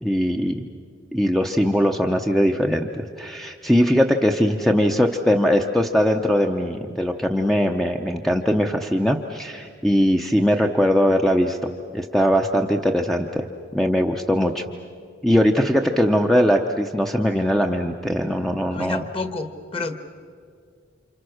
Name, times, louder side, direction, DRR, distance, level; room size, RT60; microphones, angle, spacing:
voice 1, 0.0-0.7 1.1-13.5 13.7-14.6 15.2-19.0, equal, ahead, 3 dB, 0.8 m, -20 dB
voice 2, 18.7-20.0, left 3 dB, 30° left, 8 dB, 1.6 m, -29 dB
29.5 x 27.5 x 6.5 m, 2.2 s
head